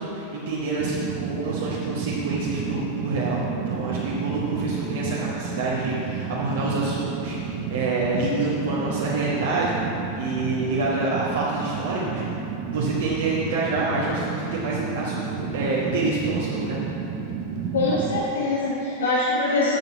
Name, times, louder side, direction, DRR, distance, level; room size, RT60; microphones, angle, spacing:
voice 1, 0.0-3.4 3.7-9.8 10.1-12.2 12.7-16.8, right 3 dB, 60° right, -6 dB, 1.3 m, -27 dB
Fire, 0.8-18.2, right 6 dB, 40° right, 0.8 m, -31 dB
voice 2, 17.7-19.8, left 2 dB, 65° left, -5 dB, 1.2 m, -23 dB
9.1 x 6.8 x 5.7 m, 3.0 s
figure-of-eight pair, 90°, 0 cm